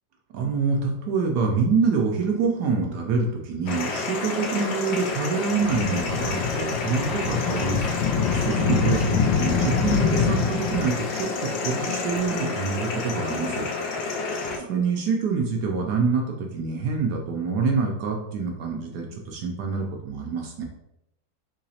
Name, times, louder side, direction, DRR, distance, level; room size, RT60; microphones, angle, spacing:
voice 1, 0.3-13.7 14.6-20.6, right 4 dB, 70° right, 1 dB, 1.0 m, -26 dB
sound 1, 3.7-14.6, left 5 dB, 90° left, 1.3 m, -26 dB
3.9 x 2.9 x 2.7 m, 0.85 s
omnidirectional pair, 2.0 m